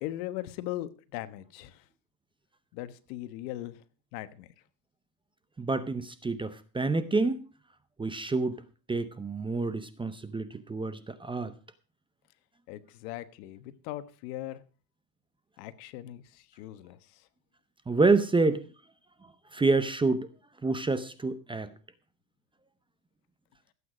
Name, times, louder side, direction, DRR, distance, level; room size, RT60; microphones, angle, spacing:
voice 1, 0.0-1.8 2.7-3.8 4.1-4.5 12.7-14.6 15.6-17.2, left 14 dB, 80° left, 1.4 m, -39 dB
voice 2, 5.6-7.4 8.0-8.6 8.9-11.5 17.9-18.6 19.5-20.3 20.6-21.7, right 3 dB, 10° right, 0.7 m, -27 dB
16.0 x 8.6 x 5.0 m
supercardioid pair, 135°, 49 cm